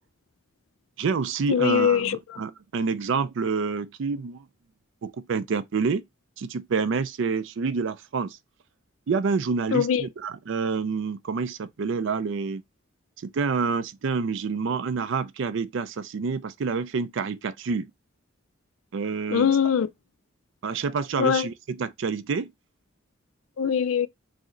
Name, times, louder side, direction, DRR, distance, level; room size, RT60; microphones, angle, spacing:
voice 1, 1.0-4.4 5.0-6.0 6.4-8.4 9.1-12.6 13.2-17.9 18.9-19.5 20.6-22.5, right 5 dB, 60° right, 0.4 m, -28 dB
voice 2, 1.5-2.4 9.7-10.1 19.3-19.9 21.2-21.5 23.6-24.1, left 7 dB, 75° left, 0.4 m, -22 dB
4.9 x 2.1 x 3.8 m
head